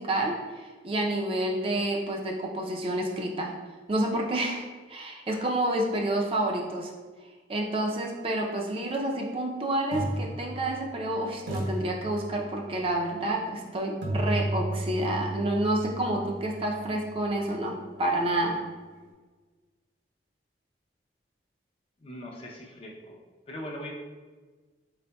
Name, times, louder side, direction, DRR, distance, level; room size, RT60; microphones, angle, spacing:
voice 1, 0.0-3.5 3.9-4.6 4.9-6.9 7.5-18.6, right 1 dB, 30° right, 0 dB, 0.4 m, -29 dB
sound 1, 8.8-9.0 9.9-11.1 11.5-12.7 14.0-17.9, right 1 dB, 85° right, 0.9 m, -34 dB
voice 2, 22.0-23.2 23.5-23.9, left 1 dB, 30° left, 0 dB, 0.5 m, -41 dB
4.2 x 4.0 x 2.2 m, 1.4 s
head